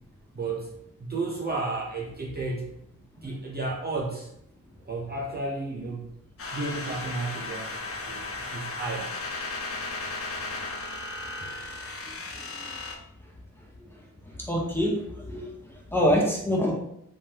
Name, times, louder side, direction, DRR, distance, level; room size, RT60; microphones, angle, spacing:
voice 1, 0.3-0.7 1.0-2.7 3.2-4.3 4.8-6.1 6.5-7.8 8.1-9.1, right 3 dB, 30° right, -3 dB, 0.7 m, -32 dB
sound 1, 6.4-12.9, left 3 dB, 40° left, 0.7 m, -35 dB
voice 2, 14.2-16.7, equal, 5° left, -3 dB, 1.1 m, -26 dB
3.5 x 3.2 x 2.9 m, 0.75 s
cardioid pair, 65°, 33 cm